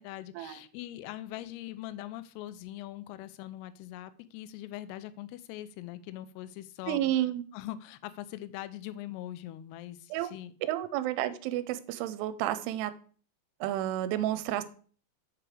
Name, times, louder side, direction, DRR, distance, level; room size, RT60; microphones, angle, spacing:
voice 1, 0.0-7.0 7.5-10.5, left 14 dB, 85° left, 13 dB, 2.5 m, -42 dB
voice 2, 6.9-7.4 10.1-10.3 10.7-12.9 13.6-14.6, right 13 dB, 85° right, 12 dB, 2.7 m, -31 dB
7.7 x 5.0 x 4.8 m, 0.43 s
omnidirectional pair, 4.9 m